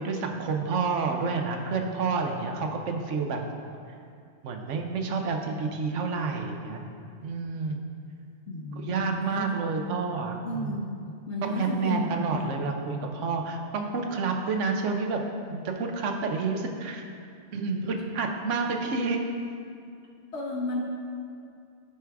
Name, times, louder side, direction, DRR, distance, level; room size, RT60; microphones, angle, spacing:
voice 1, 0.0-3.4 4.4-6.8 7.2-7.8 8.8-10.8 11.4-15.2 15.5-17.1 17.5-19.2, right 4 dB, 85° right, 3 dB, 1.1 m, -29 dB
voice 2, 8.5-9.5 10.4-12.7 20.3-20.8, left 1 dB, 70° left, -2 dB, 1.1 m, -33 dB
12.5 x 4.7 x 3.5 m, 2.4 s
omnidirectional pair, 1.2 m